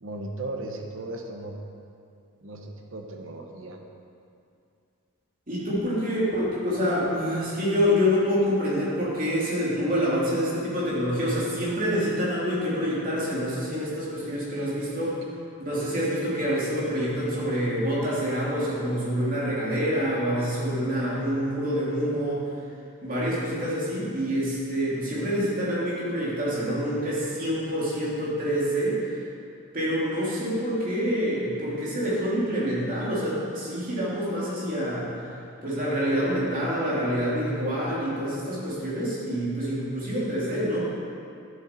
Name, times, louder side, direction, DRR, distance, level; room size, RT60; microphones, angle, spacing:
voice 1, 0.0-1.6 2.4-3.8, right 2 dB, 60° right, 2 dB, 0.9 m, -36 dB
voice 2, 5.5-15.1 15.6-22.4 23.0-29.0 29.7-35.1 35.6-40.9, equal, 40° right, -7 dB, 2.6 m, -26 dB
11.5 x 7.6 x 4.4 m, 2.5 s
head